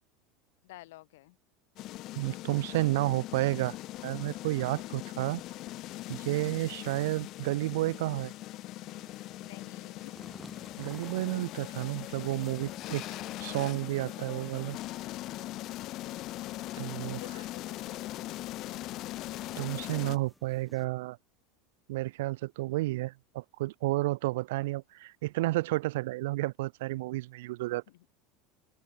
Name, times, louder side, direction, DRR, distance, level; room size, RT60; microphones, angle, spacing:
voice 1, 0.6-1.4 4.6-5.0 9.4-10.1 17.0-18.3 27.9-28.0, left 18 dB, 80° left, 2.6 m, -51 dB
sound 1, 1.8-20.2, left 16 dB, 50° left, 0.5 m, -40 dB
voice 2, 2.2-3.8 4.0-5.4 6.1-8.3 10.8-13.0 13.4-14.8 16.8-17.2 19.6-21.2 21.9-27.8, right 19 dB, 80° right, 0.3 m, -31 dB
sound 2, 8.8-20.8, left 1 dB, 5° left, 3.3 m, -57 dB
open air
supercardioid pair, 130°, 0 cm